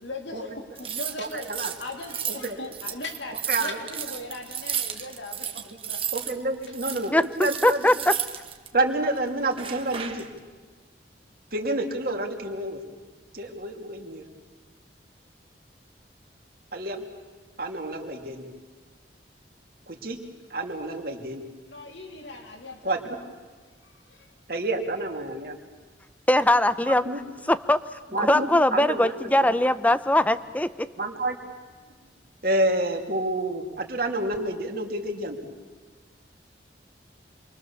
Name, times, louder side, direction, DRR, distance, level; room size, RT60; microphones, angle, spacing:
voice 1, 0.0-6.0 21.7-23.0 23.8-24.3, left 2 dB, 85° left, 2 dB, 3.3 m, -39 dB
sound 1, 0.7-6.3 6.6-8.7 9.5-10.3, right 9 dB, 30° right, 1.4 m, -33 dB
voice 2, 1.2-1.7 2.4-2.6 3.5-3.8 6.1-7.8 8.7-10.3 11.5-12.8 13.3-14.2 16.7-17.0 17.6-18.5 19.9-20.2 20.5-21.4 22.8-23.2 24.5-25.6 26.9-27.2 28.1-29.6 31.0-31.4 32.4-35.4, right 2 dB, 55° right, 2 dB, 2.6 m, -29 dB
voice 3, 7.1-8.2 26.3-27.1 27.5-30.9, left 1 dB, 10° left, 13 dB, 0.6 m, -21 dB
27.5 x 23.0 x 7.1 m, 1.5 s
head